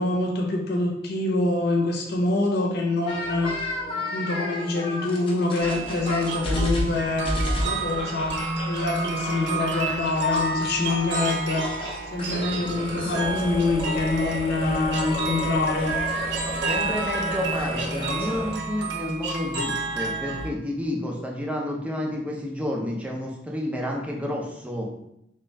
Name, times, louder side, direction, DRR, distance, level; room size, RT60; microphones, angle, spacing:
voice 1, 0.0-3.7 4.1-11.7 12.1-15.9, left 2 dB, 60° left, 0 dB, 0.8 m, -25 dB
sound 1, 3.1-11.2 11.5-18.5, left 1 dB, 30° left, 0.7 m, -32 dB
sound 2, 5.6-20.5, right 2 dB, 65° right, 0.6 m, -30 dB
voice 2, 16.4-24.9, left 1 dB, 5° right, -1 dB, 0.6 m, -30 dB
3.5 x 2.8 x 3.3 m, 0.80 s
head